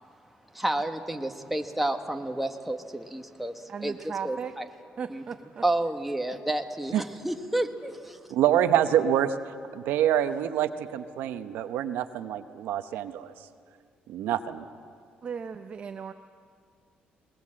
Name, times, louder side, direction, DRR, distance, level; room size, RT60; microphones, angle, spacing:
voice 1, 0.5-4.6 5.1-5.2 5.6-8.2, right 1 dB, 5° right, 4 dB, 1.3 m, -30 dB
voice 2, 3.7-4.5 5.0-5.6 15.2-16.1, right 6 dB, 40° right, 7 dB, 0.7 m, -36 dB
voice 3, 8.3-13.3 14.1-14.6, right 10 dB, 85° right, 10 dB, 0.8 m, -26 dB
20.5 x 20.0 x 7.6 m, 2.2 s
cardioid pair, 120°, 3 cm